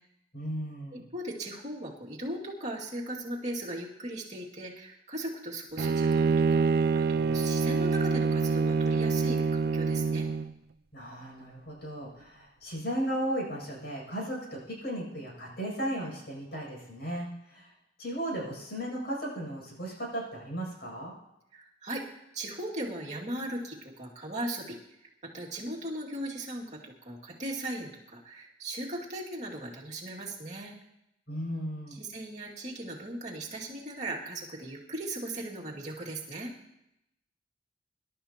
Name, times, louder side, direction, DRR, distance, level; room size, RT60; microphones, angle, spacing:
voice 1, 0.3-1.0 10.9-17.7 18.0-21.1 31.3-32.0, equal, 65° left, -3 dB, 7.3 m, -35 dB
voice 2, 0.9-6.6 6.9-10.3 21.5-22.0 22.3-24.8 25.2-30.7 32.0-36.5, right 1 dB, 40° right, -3 dB, 2.3 m, -38 dB
Bowed string instrument, 5.8-10.5, right 4 dB, 60° right, 0.4 m, -26 dB
25.5 x 12.0 x 2.9 m, 0.85 s
head